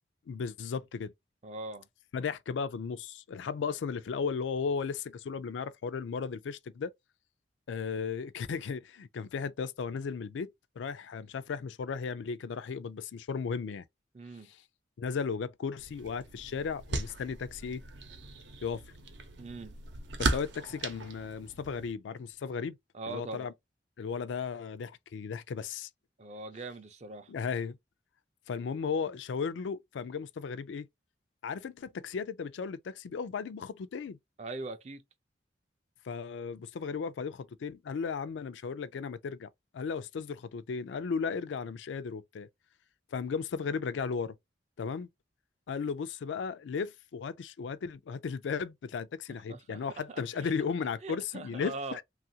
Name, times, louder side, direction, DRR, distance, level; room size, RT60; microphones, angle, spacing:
voice 1, 0.3-1.1 2.1-6.9 7.7-13.8 14.4-14.6 15.0-17.8 18.6-18.8 20.2-22.8 23.1-23.5 24.0-25.9 27.3-27.8 28.5-30.9 31.4-34.2 36.0-39.5 39.7-42.5 43.1-44.4 44.8-45.1 45.7-52.0, left 5 dB, 85° left, 0.4 m, -35 dB
voice 2, 1.4-1.9 14.1-14.5 19.4-19.8 22.9-23.5 26.2-27.3 34.4-35.0 49.5-50.5 51.0-52.0, right 2 dB, 35° right, 0.4 m, -41 dB
sound 1, 15.8-21.9, right 3 dB, 80° right, 0.7 m, -37 dB
3.1 x 2.4 x 2.7 m
head